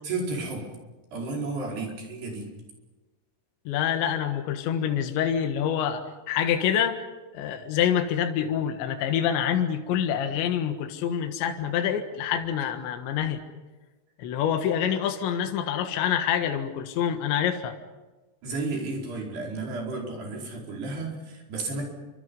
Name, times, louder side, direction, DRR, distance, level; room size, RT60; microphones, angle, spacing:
voice 1, 0.0-0.7 1.1-2.5 18.4-21.9, right 3 dB, 60° right, -1 dB, 6.7 m, -32 dB
voice 2, 3.7-7.1 7.3-13.4 14.2-17.8, left 9 dB, 70° left, 6 dB, 3.7 m, -26 dB
29.0 x 25.0 x 5.5 m, 1.2 s
omnidirectional pair, 5.6 m